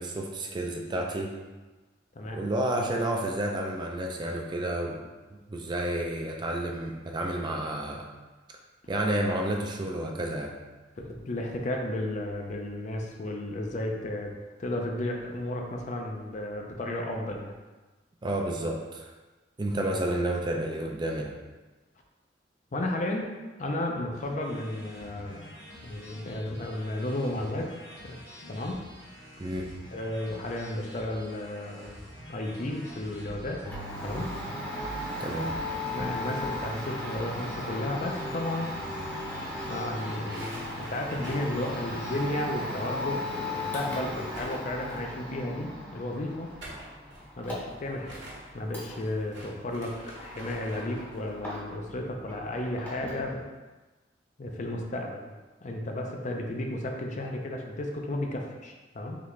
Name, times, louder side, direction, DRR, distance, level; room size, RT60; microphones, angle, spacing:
voice 1, 0.0-1.3 2.3-5.1 5.5-8.1 8.9-10.6 18.2-19.1 19.6-21.3 29.4-29.7 35.2-35.5, right 1 dB, 25° right, 1 dB, 0.4 m, -30 dB
voice 2, 11.0-14.3 14.6-17.6 22.7-23.3 23.6-25.4 25.8-27.7 28.0-28.2 28.5-28.8 29.9-32.0 32.3-33.6 34.0-34.3 35.9-38.7 39.7-46.5 47.4-48.2 48.5-53.5 54.4-55.3 55.6-59.2, left 1 dB, 40° left, 2 dB, 0.5 m, -33 dB
sound 1, 24.1-42.3, equal, 75° left, 1.4 m, -47 dB
Domestic sounds home sounds, 33.6-52.0 52.2-53.3, left 1 dB, 10° left, 0.8 m, -37 dB
sound 2, 40.2-42.7 43.0-43.1 43.4-45.2 46.3-51.2, right 1 dB, 75° right, 1.2 m, -47 dB
4.0 x 3.3 x 3.1 m, 1.2 s
head